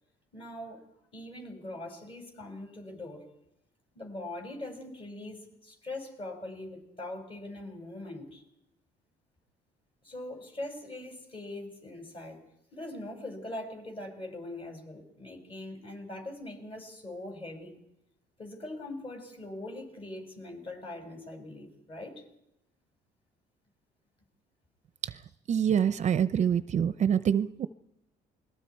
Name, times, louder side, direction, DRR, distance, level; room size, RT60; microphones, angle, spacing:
voice 1, 0.3-3.2 3.9-8.4 10.0-12.4 12.7-17.7 18.4-22.2, left 1 dB, 30° left, 3 dB, 5.9 m, -42 dB
voice 2, 25.5-27.7, right 8 dB, 45° right, 14 dB, 0.7 m, -25 dB
28.0 x 21.5 x 4.6 m, 0.83 s
cardioid pair, 110°, 17 cm